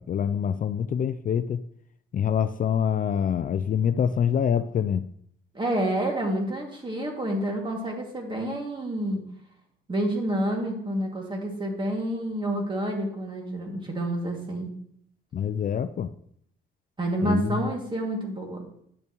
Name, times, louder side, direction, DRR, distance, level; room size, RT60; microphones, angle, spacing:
voice 1, 0.0-1.6 2.1-5.1 15.3-16.1 17.2-17.6, left 8 dB, 45° left, 11 dB, 0.4 m, -25 dB
voice 2, 5.5-9.2 9.9-14.7 17.0-18.7, right 1 dB, 25° right, 1 dB, 2.1 m, -28 dB
10.5 x 6.9 x 3.0 m, 0.68 s
cardioid pair, 90°, 20 cm